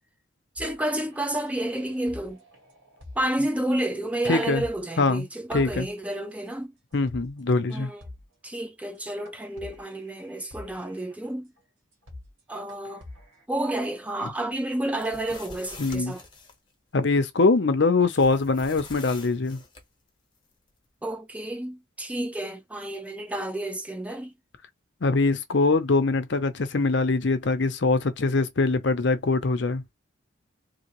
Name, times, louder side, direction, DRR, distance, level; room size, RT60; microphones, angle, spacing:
voice 1, 0.6-2.4 3.2-6.7 7.7-8.0 8.4-11.5 12.5-13.1 13.5-16.2 21.0-24.3, right 1 dB, 5° right, 0.4 m, -30 dB
sound 1, 0.6-6.1 6.4-6.5 6.9-7.4 7.7-7.8 8.0-8.5 8.9-9.0 9.2-11.1 11.6-11.7 11.9-12.4 12.7-13.4, left 2 dB, 85° right, 2.0 m, -47 dB
voice 2, 4.3-4.6 5.0-5.2 5.5-5.9 6.9-7.9 15.8-16.1 16.9-19.6 25.0-29.8, left 3 dB, 60° left, 0.6 m, -23 dB
sound 2, 14.9-16.6 18.1-19.8, left 3 dB, 25° left, 1.0 m, -45 dB
3.8 x 2.6 x 3.0 m
head